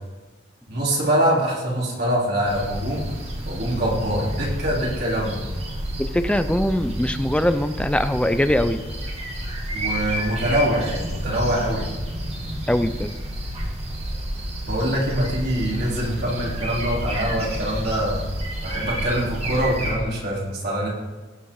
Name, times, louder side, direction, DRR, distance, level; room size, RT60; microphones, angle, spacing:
voice 1, 0.7-3.1 3.5-5.4 9.7-11.9 14.6-18.2 18.6-20.9, equal, 60° right, -5 dB, 4.1 m, -24 dB
sound 1, 2.5-19.9, equal, 35° right, 2.2 m, -30 dB
voice 2, 6.1-8.8 12.7-13.1, left 1 dB, 5° left, 10 dB, 0.6 m, -22 dB
17.5 x 6.3 x 4.8 m, 1.3 s
head